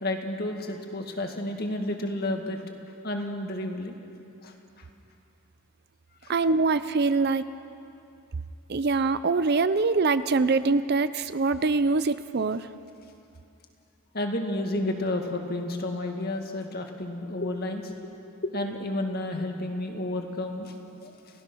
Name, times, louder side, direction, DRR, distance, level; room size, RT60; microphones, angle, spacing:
voice 1, 0.0-2.6 3.0-3.9 4.4-4.9 6.2-6.3 14.1-18.1 18.4-20.7 21.0-21.2, left 1 dB, 45° left, 3 dB, 2.0 m, -31 dB
voice 2, 6.3-7.4 8.7-12.7, right 3 dB, 45° right, 13 dB, 0.5 m, -24 dB
29.5 x 16.0 x 6.3 m, 2.6 s
head